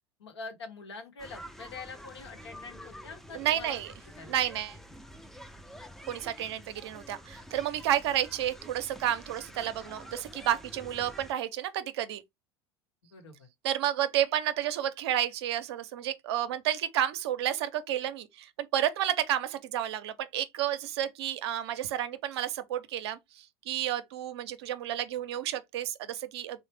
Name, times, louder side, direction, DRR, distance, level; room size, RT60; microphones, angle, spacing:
voice 1, 0.2-3.8 4.1-4.4 13.0-13.5, left 4 dB, 90° left, 0.9 m, -44 dB
sound 1, 1.2-11.3, equal, ahead, 0.4 m, -48 dB
voice 2, 3.3-3.9 4.3-4.8 6.1-12.2 13.6-26.6, right 11 dB, 80° right, 0.5 m, -31 dB
3.2 x 2.1 x 3.2 m
hypercardioid pair, 85°, 14 cm